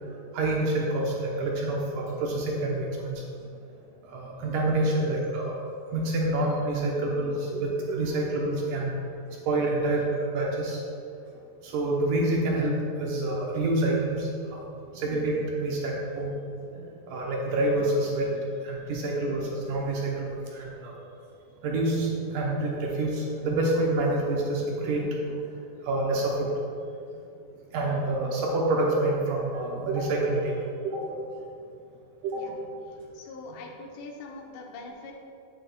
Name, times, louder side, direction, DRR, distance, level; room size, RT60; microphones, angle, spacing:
voice 1, 0.0-3.2 4.1-5.6 5.9-8.9 9.5-10.8 11.6-12.7 13.0-14.6 14.9-16.3 16.7-18.3 18.6-20.9 21.6-25.3 25.8-26.5 27.7-31.1 32.2-32.5, right 2 dB, 75° right, -2 dB, 2.1 m, -27 dB
voice 2, 33.1-35.1, left 3 dB, 85° left, 0 dB, 1.7 m, -42 dB
9.3 x 7.7 x 2.3 m, 2.5 s
omnidirectional pair, 4.5 m